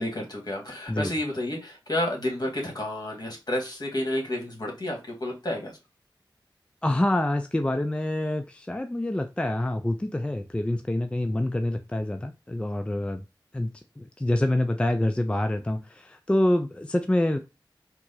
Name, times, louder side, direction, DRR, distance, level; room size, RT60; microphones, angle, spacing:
voice 1, 0.0-5.7, left 1 dB, 55° left, 1.4 m, -30 dB
voice 2, 6.8-13.2 13.5-17.4, left 1 dB, 15° left, 0.3 m, -26 dB
4.5 x 2.0 x 2.6 m
wide cardioid pair, 55°, 8 cm